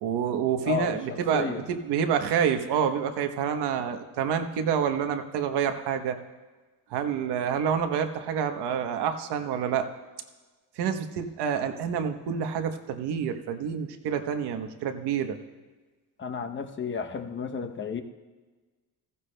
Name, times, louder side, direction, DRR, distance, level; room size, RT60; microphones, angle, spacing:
voice 1, 0.0-6.2 6.9-9.9 10.8-15.4, right 7 dB, 80° right, 7 dB, 1.1 m, -28 dB
voice 2, 0.6-1.6 16.2-18.0, left 6 dB, 30° left, 6 dB, 0.8 m, -32 dB
15.0 x 15.0 x 2.2 m, 1.3 s
cardioid pair, 120°, 40 cm